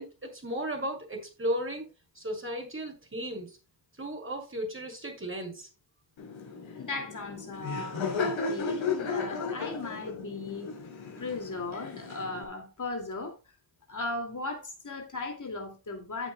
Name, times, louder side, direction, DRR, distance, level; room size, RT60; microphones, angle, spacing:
voice 1, 0.0-1.9 2.1-3.5 4.0-5.7, equal, 25° right, 6.0 m, -35 dB
Laughter, 6.2-12.4, left 4 dB, 65° left, 3.5 m, -35 dB
voice 2, 6.7-10.7 11.2-13.4 13.9-16.3, left 3 dB, 35° left, 2.7 m, -37 dB
14.5 x 7.5 x 2.4 m
hypercardioid pair, 40°, 49 cm